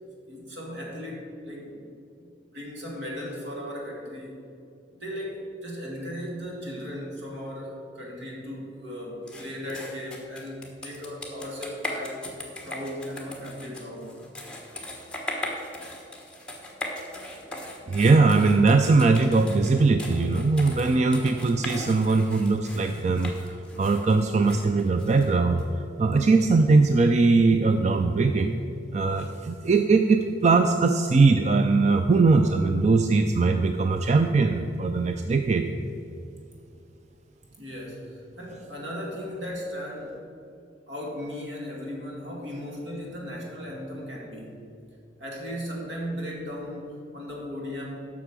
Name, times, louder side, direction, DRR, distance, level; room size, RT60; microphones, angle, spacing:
voice 1, 0.3-4.4 4.9-12.2 12.6-14.2 37.6-40.2 40.9-44.7 45.2-48.1, equal, 70° right, -2 dB, 2.3 m, -37 dB
sound 1, 9.3-25.6, left 1 dB, 5° left, 1.1 m, -39 dB
voice 2, 17.9-28.6 28.9-35.7, right 3 dB, 35° right, 6 dB, 0.3 m, -21 dB
8.1 x 6.1 x 7.4 m, 2.6 s
head